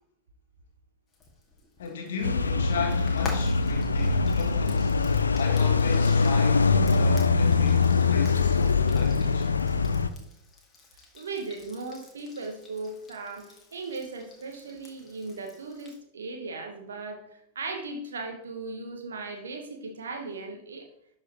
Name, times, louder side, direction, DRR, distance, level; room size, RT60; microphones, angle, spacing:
Frying (food), 1.1-16.0, left 3 dB, 20° left, 1.9 m, -49 dB
voice 1, 1.8-5.0 5.4-9.5, left 5 dB, 60° left, 1.6 m, -36 dB
sound 1, 2.2-10.1, left 4 dB, 75° left, 0.4 m, -23 dB
voice 2, 11.1-20.9, right 3 dB, 70° right, 1.1 m, -37 dB
11.5 x 4.8 x 3.0 m
figure-of-eight pair, 90°, 0 cm